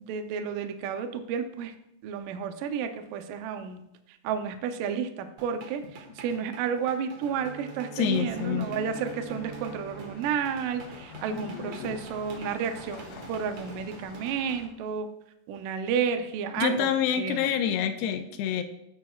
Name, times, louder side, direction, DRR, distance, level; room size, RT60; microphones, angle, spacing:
voice 1, 0.0-1.7 2.0-3.8 4.1-15.1 15.5-16.9 17.2-17.5, right 7 dB, 85° right, 7 dB, 1.9 m, -31 dB
sound 1, 5.4-14.6, right 4 dB, 65° right, 1.9 m, -47 dB
Bowed string instrument, 7.2-11.3, right 5 dB, 50° right, 3.6 m, -46 dB
voice 2, 8.0-9.1 11.3-12.0 16.6-18.6, left 9 dB, 85° left, 7 dB, 2.6 m, -28 dB
sound 2, 8.1-14.7, left 5 dB, 60° left, 2.6 m, -48 dB
17.5 x 8.7 x 2.4 m, 0.80 s
omnidirectional pair, 4.9 m